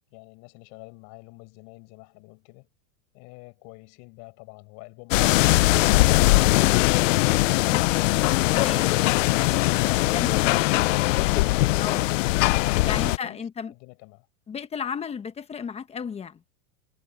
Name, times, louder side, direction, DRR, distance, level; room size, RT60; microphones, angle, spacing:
voice 1, 0.1-2.7 3.1-8.7 12.5-14.3, left 31 dB, 50° left, 6.2 m, -47 dB
sound 1, 5.1-13.2, left 20 dB, 75° left, 0.6 m, -21 dB
voice 2, 8.5-8.9 10.1-10.6 11.8-12.1 12.9-13.7 14.5-16.4, left 6 dB, 15° left, 1.1 m, -33 dB
supercardioid pair, 150°, 38 cm